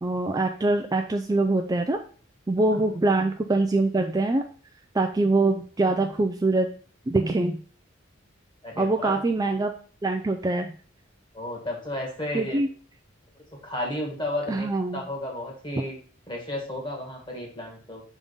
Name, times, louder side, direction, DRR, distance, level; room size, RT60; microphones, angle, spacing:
voice 1, 0.0-2.0 2.5-4.4 4.9-6.7 7.1-7.6 8.8-9.7 10.0-10.7 12.3-12.7 14.5-15.0, right 2 dB, 20° right, 4 dB, 0.3 m, -24 dB
voice 2, 8.6-9.2 11.3-12.6 13.6-14.7 14.9-16.0 16.3-18.0, left 1 dB, 25° left, -1 dB, 1.8 m, -32 dB
5.3 x 3.6 x 5.2 m, 0.43 s
head